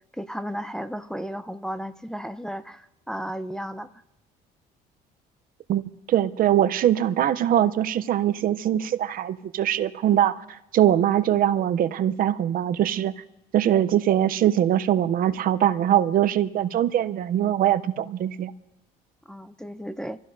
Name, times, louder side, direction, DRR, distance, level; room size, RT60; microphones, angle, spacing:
voice 1, 0.1-3.9 19.3-20.2, equal, 5° left, 9 dB, 0.5 m, -34 dB
voice 2, 6.1-13.1 13.5-18.5, right 11 dB, 60° right, 13 dB, 0.6 m, -22 dB
25.5 x 16.0 x 2.6 m, 0.92 s
cardioid pair, 110°, 17 cm